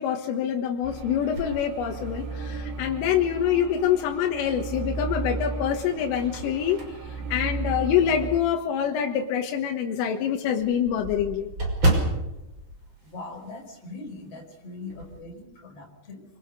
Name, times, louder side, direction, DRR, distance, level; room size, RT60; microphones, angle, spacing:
voice 1, 0.0-11.5, left 9 dB, 80° left, 2 dB, 4.1 m, -26 dB
sound 1, 0.8-8.4, right 4 dB, 60° right, 3.9 m, -35 dB
sound 2, 1.3-2.6 3.1-3.2 4.7-5.2 5.7-8.3 8.8-8.9 9.3-9.4 9.7-9.8 10.0-13.8 14.0-14.3 14.6-15.2, right 1 dB, 25° right, 6.2 m, -31 dB
voice 2, 13.0-16.3, left 3 dB, 30° left, 2 dB, 5.6 m, -41 dB
26.5 x 25.5 x 6.7 m, 0.93 s
omnidirectional pair, 5.8 m